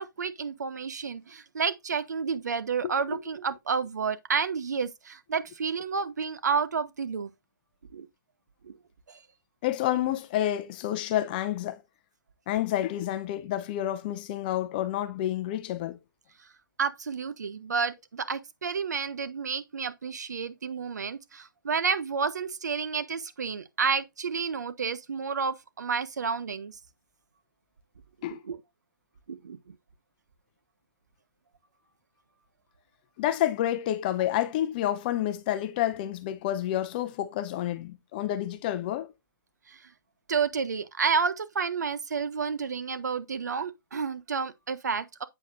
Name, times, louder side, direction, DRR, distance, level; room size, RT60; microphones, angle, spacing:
voice 1, 0.0-7.3 7.9-8.1 8.6-8.7 9.1-9.2 16.8-26.8 28.2-28.6 29.3-29.7 39.7-39.9 40.3-45.2, right 5 dB, 55° right, 1.2 m, -30 dB
voice 2, 2.8-3.2 9.6-11.8 12.5-16.0 28.2-28.4 33.2-39.1, left 12 dB, 25° left, 0.7 m, -29 dB
8.3 x 7.2 x 2.6 m
figure-of-eight pair, 130°, 11 cm